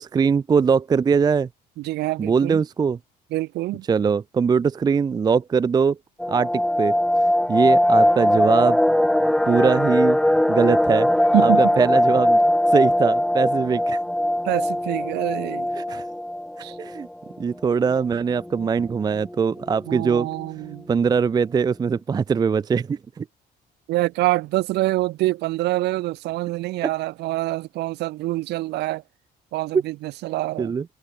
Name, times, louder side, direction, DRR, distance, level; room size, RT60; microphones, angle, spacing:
voice 1, 0.0-1.5 2.2-3.0 3.9-6.0 6.3-6.9 7.5-8.8 9.5-10.2 10.5-11.1 11.4-14.0 15.8-16.1 16.7-17.1 17.4-20.3 20.9-23.2 30.6-30.8, right 6 dB, 25° right, 0.4 m, -21 dB
voice 2, 1.8-2.6 3.3-3.8 11.3-11.6 14.4-16.0 16.6-16.8 19.9-20.9 23.9-29.0 29.5-30.7, right 18 dB, 80° right, 1.0 m, -25 dB
sound 1, 6.2-17.0 17.3-17.4 17.7-17.9 18.4-18.8 19.3-19.4 19.6-20.1 20.4-20.5, left 1 dB, 5° left, 0.9 m, -20 dB
cardioid pair, 110°, 17 cm